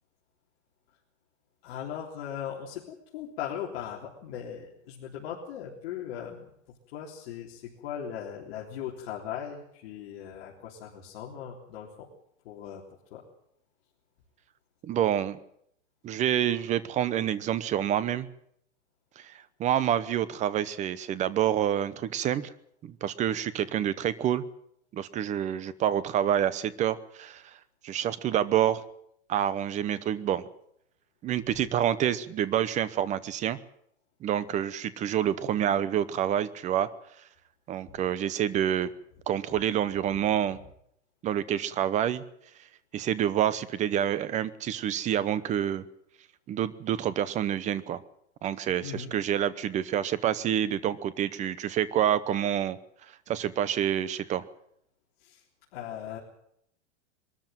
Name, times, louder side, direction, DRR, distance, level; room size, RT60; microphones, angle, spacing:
voice 1, 1.6-6.5 6.9-12.1 12.4-12.8 13.1-13.2 31.5-31.6 37.9-38.0 48.8-49.2 55.2-55.4 55.7-56.2, left 9 dB, 55° left, -4 dB, 3.7 m, -39 dB
voice 2, 14.8-15.4 16.0-18.3 19.2-19.3 19.6-22.5 22.8-24.4 24.9-27.4 27.8-28.8 29.3-30.5 31.2-33.6 34.2-36.9 37.7-38.9 39.3-40.6 41.2-42.2 42.9-45.8 46.5-48.0 48.4-52.8 53.3-54.4, right 10 dB, 20° right, 17 dB, 0.8 m, -27 dB
22.5 x 13.5 x 9.2 m, 0.73 s
supercardioid pair, 160°, 36 cm